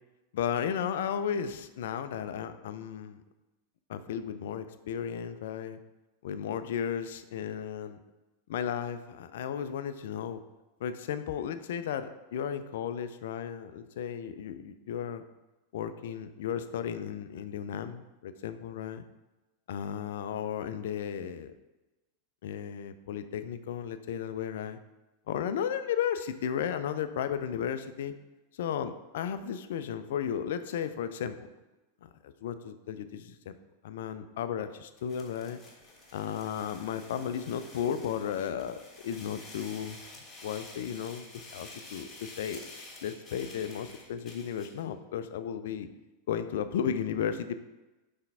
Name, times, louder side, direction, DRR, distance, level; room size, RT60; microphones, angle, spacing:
voice 1, 0.3-3.2 3.9-5.8 6.2-8.0 8.5-10.4 10.8-15.2 15.7-19.0 19.7-21.5 22.4-24.8 25.3-28.1 28.5-31.4 32.0-33.6 33.8-35.6 36.1-38.8 39.0-40.0 40.4-41.3 41.5-42.6 43.0-45.9 46.3-47.6, left 8 dB, 55° left, 11 dB, 0.4 m, -34 dB
sound 1, 35.0-44.8, left 2 dB, 20° left, 1.8 m, -49 dB
5.7 x 3.5 x 5.5 m, 1.1 s
figure-of-eight pair, 90°, 0 cm